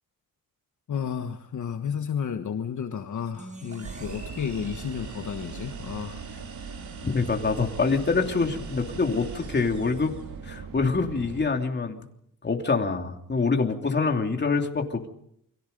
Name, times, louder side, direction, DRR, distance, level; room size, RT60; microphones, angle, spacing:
voice 1, 0.9-6.2, left 7 dB, 60° left, 6 dB, 1.4 m, -32 dB
sound 1, 3.3-6.5, right 1 dB, 20° right, 7.7 m, -48 dB
sound 2, 3.7-10.4, right 5 dB, 55° right, 4.2 m, -48 dB
sound 3, 3.8-11.5, right 6 dB, 75° right, 2.5 m, -40 dB
voice 2, 7.0-10.1 10.4-12.0 12.4-15.1, left 4 dB, 30° left, 3 dB, 3.0 m, -25 dB
29.0 x 23.5 x 5.4 m, 0.71 s
wide cardioid pair, 135°, 34 cm